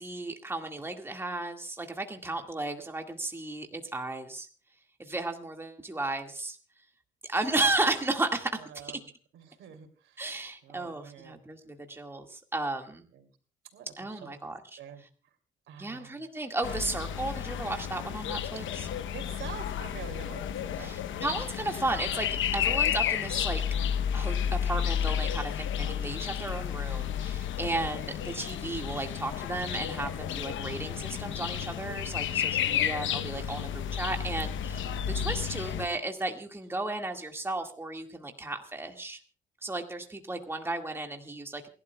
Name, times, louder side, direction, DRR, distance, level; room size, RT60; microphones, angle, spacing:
voice 1, 0.0-4.5 5.0-6.6 7.2-8.9 10.2-13.1 14.0-14.8 15.8-18.9 20.8-23.6 24.1-39.2 39.6-41.7, right 2 dB, 10° right, 3 dB, 2.0 m, -34 dB
voice 2, 8.6-9.0 9.3-11.4 13.1-13.3 13.7-15.0 15.7-16.2 19.1-20.9, right 8 dB, 80° right, 5 dB, 3.1 m, -47 dB
sound 1, 16.6-35.9, left 9 dB, 75° left, 1.0 m, -32 dB
28.0 x 12.0 x 2.3 m, 0.39 s
cardioid pair, 90°, 20 cm